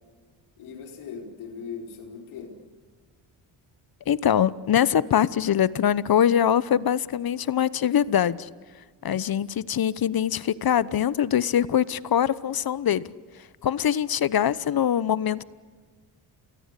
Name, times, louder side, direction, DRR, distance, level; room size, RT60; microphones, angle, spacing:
voice 1, 0.6-2.6, left 6 dB, 85° left, 1 dB, 4.8 m, -39 dB
voice 2, 4.1-8.5 9.0-13.1 13.6-15.4, left 9 dB, 50° left, 18 dB, 1.0 m, -23 dB
28.5 x 20.5 x 8.4 m, 1.5 s
supercardioid pair, 65°, 47 cm